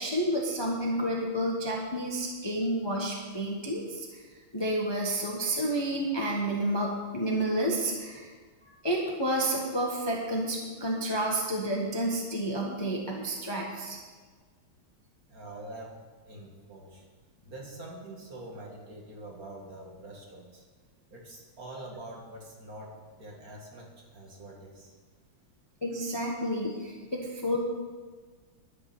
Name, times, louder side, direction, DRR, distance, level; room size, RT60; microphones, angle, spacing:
voice 1, 0.0-4.1 4.5-8.3 8.8-14.0 25.8-27.6, right 1 dB, 15° left, -1 dB, 1.3 m, -30 dB
voice 2, 15.3-15.9 16.2-17.0 17.5-20.6 21.1-24.9, right 1 dB, 45° right, -1 dB, 2.5 m, -45 dB
11.0 x 10.0 x 6.3 m, 1.4 s
omnidirectional pair, 2.3 m